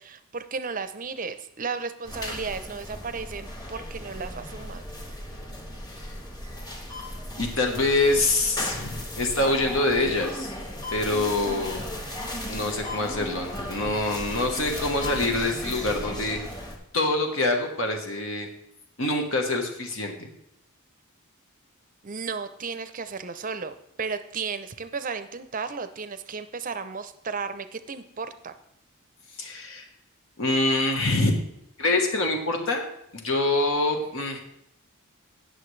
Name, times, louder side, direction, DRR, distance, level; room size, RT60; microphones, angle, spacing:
voice 1, 0.0-4.8 22.0-28.5, right 5 dB, 35° right, 11 dB, 0.6 m, -34 dB
sound 1, 2.0-16.8, left 1 dB, 20° left, 1.3 m, -36 dB
voice 2, 7.4-10.5 10.9-11.9 12.5-16.4 16.9-18.5 19.0-20.3 29.4-29.9 30.4-31.4 31.8-32.8 33.1-34.4, left 2 dB, 60° left, 3 dB, 1.2 m, -25 dB
17.5 x 6.6 x 3.2 m, 0.79 s
head